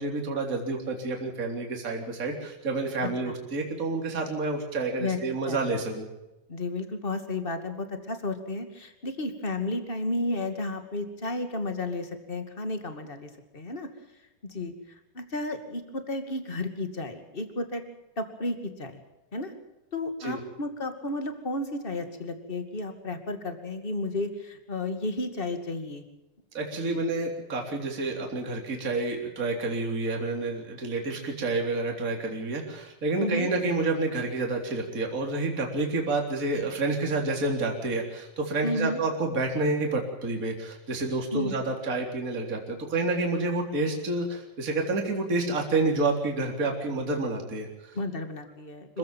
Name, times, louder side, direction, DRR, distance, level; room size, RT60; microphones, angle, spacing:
voice 1, 0.0-6.1 20.2-20.4 26.5-47.9 48.9-49.0, right 3 dB, 25° right, 2 dB, 3.8 m, -29 dB
voice 2, 3.0-3.4 5.0-5.2 5.5-5.7 6.5-13.9 14.5-17.8 18.2-19.0 19.3-19.5 19.9-26.0 26.9-27.0 33.2-33.5 38.6-39.0 41.3-41.6 47.9-49.0, left 2 dB, 20° left, 7 dB, 2.0 m, -32 dB
26.0 x 16.0 x 7.5 m, 1.0 s
omnidirectional pair, 3.8 m